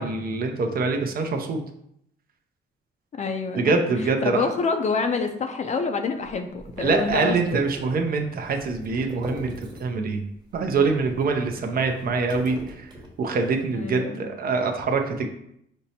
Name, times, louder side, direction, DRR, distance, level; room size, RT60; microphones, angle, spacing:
voice 1, 0.0-1.6 3.6-4.5 6.8-12.9 13.2-15.3, right 4 dB, 50° right, 4 dB, 0.5 m, -25 dB
voice 2, 3.1-3.8 4.2-7.7 13.7-14.2, left 4 dB, 35° left, 6 dB, 0.4 m, -27 dB
sound 1, 6.2-10.1 10.4-13.5, right 1 dB, 20° right, 1.0 m, -41 dB
5.2 x 2.1 x 2.8 m, 0.75 s
cardioid pair, 90°, 20 cm